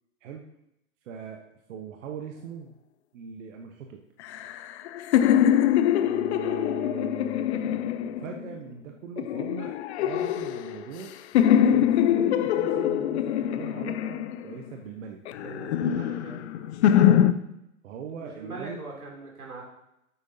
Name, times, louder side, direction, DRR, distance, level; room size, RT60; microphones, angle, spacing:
voice 1, 1.0-1.4 1.7-2.7 3.1-4.0 6.0-11.1 11.6-15.2 16.8-17.2 17.8-18.8, right 7 dB, 60° right, 3 dB, 1.0 m, -40 dB
sound 1, 4.2-8.5 9.2-11.0 11.3-14.7 15.3-17.3, left 10 dB, 50° left, 0.6 m, -23 dB
voice 2, 15.3-16.7 18.2-19.6, right 3 dB, 85° right, -2 dB, 3.0 m, -41 dB
9.5 x 8.2 x 2.7 m, 0.83 s
hypercardioid pair, 115°, 43 cm